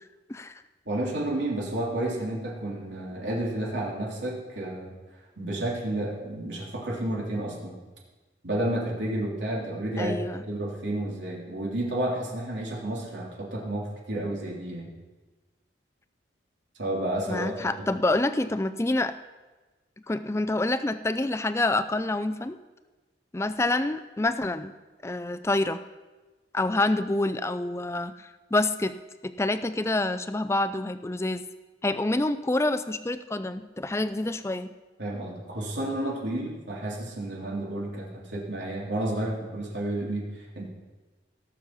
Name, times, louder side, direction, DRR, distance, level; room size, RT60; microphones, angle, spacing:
voice 1, 0.8-4.9 5.4-7.8 8.4-10.2 10.5-14.9 16.8-17.7 35.0-40.7, right 1 dB, 85° right, -3 dB, 3.2 m, -31 dB
voice 2, 10.0-10.4 17.3-19.2 20.1-22.6 23.3-24.7 25.0-25.8 26.5-28.9 29.2-31.5 31.8-34.7, left 2 dB, 15° left, 11 dB, 0.4 m, -27 dB
17.0 x 7.0 x 6.0 m, 1.2 s
head